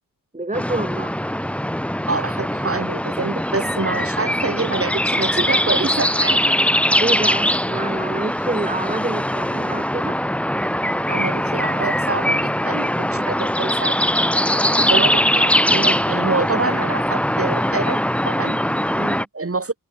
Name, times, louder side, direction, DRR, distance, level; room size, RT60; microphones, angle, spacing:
voice 1, 0.3-1.1 7.0-10.2 13.1-13.4 19.0-19.3, right 2 dB, 20° right, 2.1 m, -27 dB
sound 1, 0.5-19.2, equal, 5° left, 2.0 m, -21 dB
voice 2, 2.1-6.5 11.1-14.1 14.8-18.6 19.3-19.7, right 3 dB, 40° right, 3.3 m, -26 dB
open air
cardioid pair, 50°, 35 cm